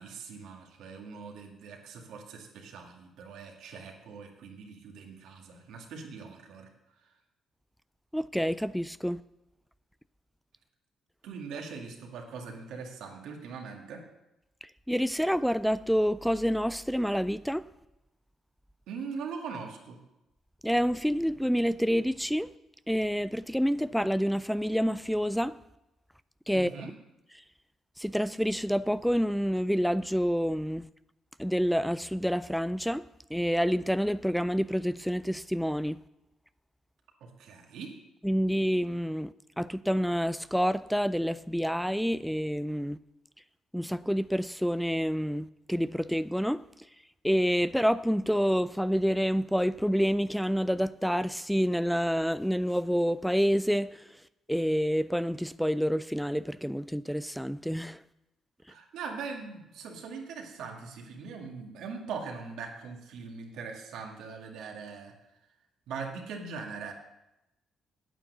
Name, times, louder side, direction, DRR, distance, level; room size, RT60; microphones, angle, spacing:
voice 1, 0.0-6.7 11.2-14.0 18.9-20.0 26.5-26.9 37.2-38.0 58.7-65.1 65.9-66.9, right 5 dB, 85° right, 2.0 m, -41 dB
voice 2, 8.1-9.2 14.6-17.7 20.6-22.5 22.9-25.6 26.5-26.7 27.3-27.4 28.0-30.9 31.4-36.0 38.2-43.0 43.7-46.6 47.2-54.2 54.5-58.0, equal, ahead, 0.3 m, -28 dB
9.0 x 8.9 x 6.6 m
cardioid pair, 90°, 0 cm